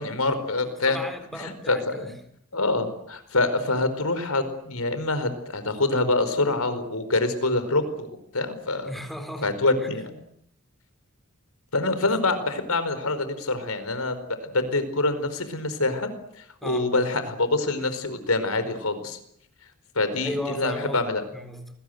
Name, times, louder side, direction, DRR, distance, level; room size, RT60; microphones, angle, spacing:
voice 1, 0.0-1.0 1.3-2.1 2.5-8.9 9.4-10.1 11.7-19.2 19.9-21.2, left 2 dB, 90° left, 4.6 m, -26 dB
voice 2, 0.6-2.1 8.8-9.5 16.6-16.9 20.2-21.0 21.3-21.7, equal, ahead, 4.1 m, -35 dB
29.5 x 21.5 x 8.0 m
head